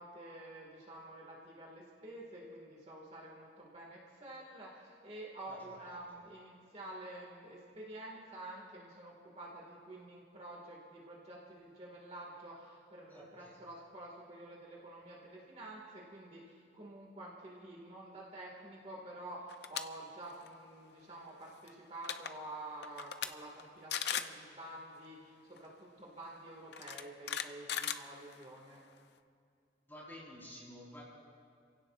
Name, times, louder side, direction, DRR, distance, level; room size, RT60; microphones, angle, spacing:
voice 1, 0.0-28.8, right 1 dB, 35° right, -3 dB, 2.0 m, -49 dB
voice 2, 13.1-13.5 29.9-31.0, equal, 10° left, -6 dB, 4.5 m, -51 dB
sound 1, 19.5-19.8 20.2-20.5 21.7-21.8 22.0-22.3 22.8-23.3 23.6-23.7 23.9-24.4 25.6-25.7 26.7-28.6, left 9 dB, 60° left, 0.6 m, -37 dB
30.0 x 16.5 x 2.5 m, 2.3 s
head